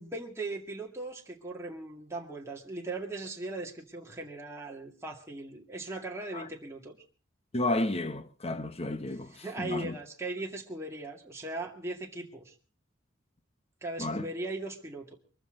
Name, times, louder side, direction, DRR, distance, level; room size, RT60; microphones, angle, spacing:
voice 1, 0.0-7.0 9.4-12.5 13.8-15.2, right 2 dB, 15° right, 2.2 m, -39 dB
voice 2, 7.5-10.0 14.0-14.3, left 2 dB, 35° left, 1.1 m, -32 dB
23.5 x 14.5 x 3.8 m
head